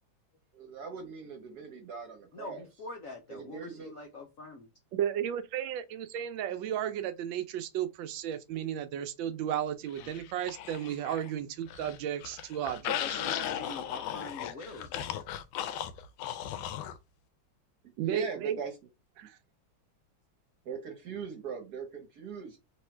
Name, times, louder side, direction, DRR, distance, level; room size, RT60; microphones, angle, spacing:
voice 1, 0.5-2.6 3.3-3.9 18.0-18.7 19.2-19.3 20.6-22.6, right 6 dB, 60° right, 1.3 m, -40 dB
voice 2, 2.3-4.7 10.0-10.1 13.0-15.1, left 3 dB, 65° left, 0.8 m, -44 dB
voice 3, 4.9-13.2 18.0-18.6 19.2-19.4, right 10 dB, 75° right, 1.3 m, -34 dB
sound 1, 10.0-11.3 11.6-17.0, left 10 dB, 85° left, 1.4 m, -37 dB
3.6 x 3.0 x 4.4 m
omnidirectional pair, 2.2 m